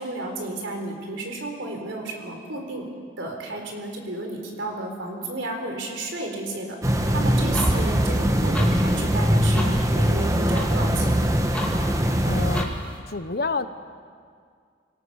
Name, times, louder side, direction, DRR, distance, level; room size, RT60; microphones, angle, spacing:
voice 1, 0.0-2.9 3.2-11.3, right 2 dB, 80° right, 3 dB, 3.9 m, -32 dB
sound 1, 6.8-12.6, equal, 15° right, 1.2 m, -21 dB
sound 2, 7.4-13.0, left 1 dB, 5° left, 2.3 m, -38 dB
voice 2, 12.2-12.8 13.1-13.7, left 3 dB, 50° left, 11 dB, 0.9 m, -28 dB
25.0 x 17.5 x 7.1 m, 2.1 s
head